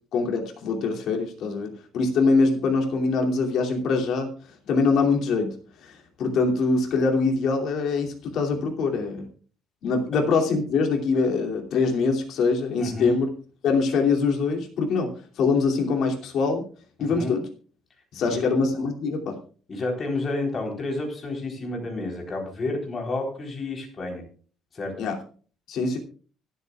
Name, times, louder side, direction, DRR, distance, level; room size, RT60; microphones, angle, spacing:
voice 1, 0.1-4.3 4.6-5.5 5.8-5.9 6.2-9.3 9.8-13.3 13.6-15.1 15.4-16.7 17.0-17.5 18.1-19.4 25.0-25.2 25.7-26.0, left 4 dB, 60° left, 2 dB, 2.8 m, -23 dB
voice 2, 12.8-13.1 17.0-17.3 18.2-18.5 19.7-24.2 24.7-24.9, left 2 dB, 30° left, 1 dB, 4.0 m, -30 dB
24.5 x 8.3 x 2.4 m, 0.41 s
cardioid pair, 160°, 0 cm